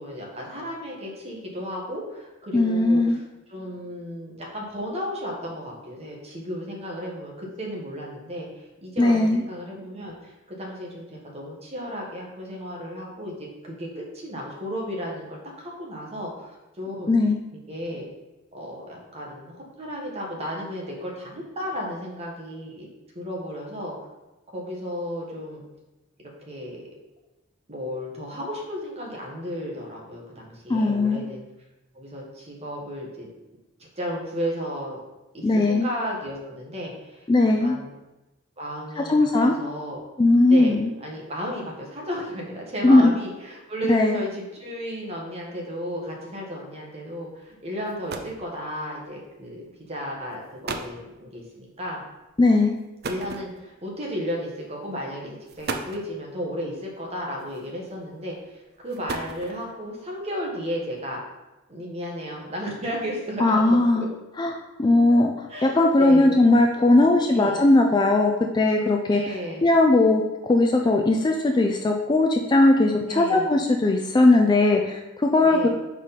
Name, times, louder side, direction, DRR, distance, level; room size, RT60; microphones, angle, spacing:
voice 1, 0.0-3.2 3.5-8.5 8.8-17.1 17.7-18.0 18.5-22.9 23.1-23.9 24.5-25.6 26.5-26.9 27.7-31.4 31.9-33.3 34.0-35.0 35.3-37.2 37.6-37.9 38.6-39.1 39.4-40.0 40.4-40.7 41.0-52.0 53.0-58.4 58.8-61.2 61.7-64.1 65.5-66.6 67.3-67.6 69.1-69.7 73.0-73.5 75.4-75.7, equal, 30° right, -2 dB, 1.3 m, -34 dB
voice 2, 2.5-3.2 9.0-9.4 17.1-17.4 30.7-31.2 35.4-35.9 37.3-37.8 39.0-39.5 40.2-40.9 42.8-43.1 43.9-44.2 52.4-52.8 63.4-64.0 64.4-64.5 64.8-65.3 65.6-69.2 69.6-70.2 70.5-75.7, left 2 dB, 20° left, 2 dB, 0.3 m, -18 dB
sound 1, 47.5-47.6 47.9-48.5 49.5-49.7 50.3-50.4 50.6-51.0 53.0-53.9 54.8-55.0 55.5-56.1 57.4-57.9 58.7-59.8, right 3 dB, 50° right, 0.5 m, -34 dB
5.6 x 4.7 x 4.1 m, 1.0 s
head